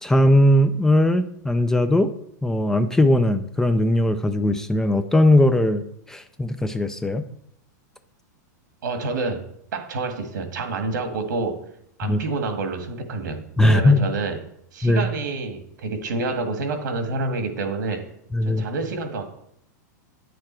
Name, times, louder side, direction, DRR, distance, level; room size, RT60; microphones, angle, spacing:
voice 1, 0.0-2.1 2.4-7.2 12.0-12.2 13.6-14.0 14.8-15.1 18.3-18.7, left 1 dB, 5° left, 9 dB, 0.4 m, -19 dB
voice 2, 8.8-11.6 12.0-14.4 14.7-18.1 18.4-19.3, right 3 dB, 85° right, 7 dB, 1.7 m, -28 dB
9.4 x 6.8 x 4.4 m, 0.72 s
supercardioid pair, 150°, 10 cm